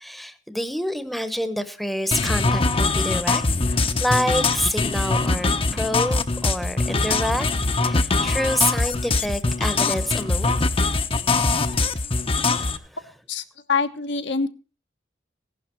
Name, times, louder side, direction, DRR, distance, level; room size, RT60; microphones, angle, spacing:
voice 1, 0.0-3.4 3.7-7.5 7.8-10.5 11.5-11.6 12.5-12.8, equal, ahead, 11 dB, 1.0 m, -27 dB
sound 1, 2.1-12.8, left 3 dB, 30° left, 0.8 m, -22 dB
voice 2, 13.3-14.5, left 5 dB, 70° left, 8 dB, 1.2 m, -25 dB
16.0 x 11.5 x 4.4 m, 0.35 s
head